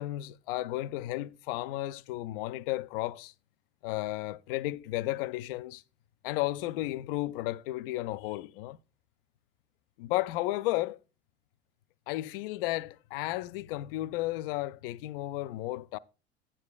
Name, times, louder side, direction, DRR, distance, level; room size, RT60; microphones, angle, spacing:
voice 1, 0.0-3.3 3.8-5.8 6.2-8.8 10.0-11.0 12.1-16.0, left 17 dB, 55° left, 0.4 m, -33 dB
9.8 x 9.5 x 2.3 m
figure-of-eight pair, 65°, 33 cm